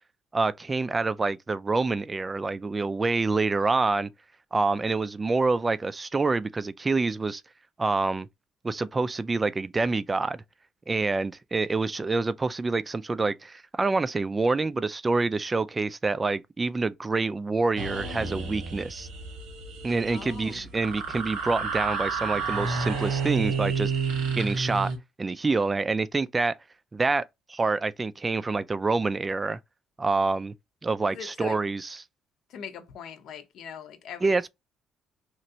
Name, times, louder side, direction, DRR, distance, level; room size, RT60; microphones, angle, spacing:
voice 1, 0.3-4.1 4.5-7.4 7.8-8.3 8.6-10.4 10.9-19.1 19.8-23.9 24.4-24.9 25.2-26.6 26.9-29.6 30.0-30.5 30.8-32.0 34.2-34.5, right 3 dB, 25° right, 0.3 m, -27 dB
sound 1, 17.8-25.0, right 5 dB, 80° right, 1.2 m, -30 dB
voice 2, 20.1-20.7 31.1-31.6 32.5-34.5, left 8 dB, 70° left, 0.7 m, -41 dB
3.0 x 2.5 x 2.7 m
supercardioid pair, 75°, 0 cm